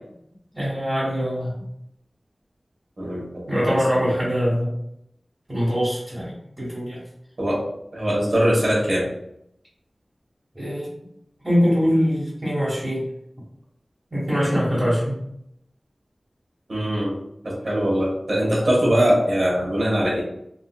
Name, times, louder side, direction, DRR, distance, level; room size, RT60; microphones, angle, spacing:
voice 1, 0.5-1.5 3.5-4.7 5.5-7.0 10.5-10.9 11.4-13.1 14.1-15.2, equal, 30° right, -8 dB, 1.5 m, -23 dB
voice 2, 3.0-4.1 7.4-7.6 7.9-9.1 16.7-17.2 17.4-20.2, equal, 70° right, -5 dB, 1.4 m, -22 dB
3.9 x 2.6 x 2.3 m, 0.77 s
wide cardioid pair, 65°, 0 cm